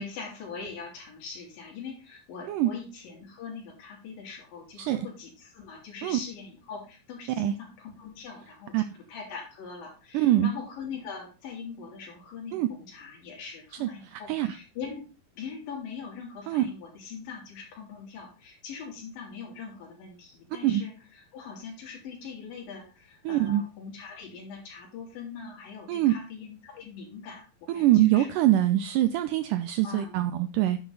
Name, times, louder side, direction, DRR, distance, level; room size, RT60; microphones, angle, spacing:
voice 1, 0.0-15.1 15.4-28.3 29.8-30.1, left 5 dB, 70° left, -1 dB, 4.6 m, -42 dB
voice 2, 10.1-10.5 12.5-12.7 13.8-14.6 16.5-16.7 20.6-20.8 23.3-23.6 25.9-26.1 27.7-30.8, right 13 dB, 80° right, 11 dB, 1.9 m, -24 dB
10.5 x 6.9 x 3.9 m, 0.33 s
omnidirectional pair, 4.2 m